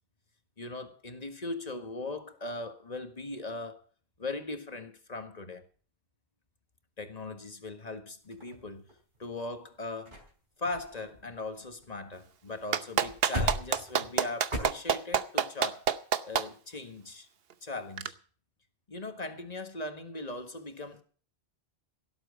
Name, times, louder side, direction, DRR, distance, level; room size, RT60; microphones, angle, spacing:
voice 1, 0.6-3.9 4.2-5.7 7.0-8.9 9.2-10.2 10.6-15.9 16.2-17.3 17.6-18.2 18.9-21.0, left 2 dB, 40° left, 1.7 m, -39 dB
sound 1, 8.3-9.2 9.7-9.8 10.1-10.3 10.6-12.2 12.5-12.6 12.9-14.6, equal, 50° right, 4.5 m, -38 dB
Clapping, 12.7-16.4 18.0-18.1, right 8 dB, 70° right, 1.1 m, -26 dB
17.0 x 7.9 x 6.3 m
omnidirectional pair, 1.1 m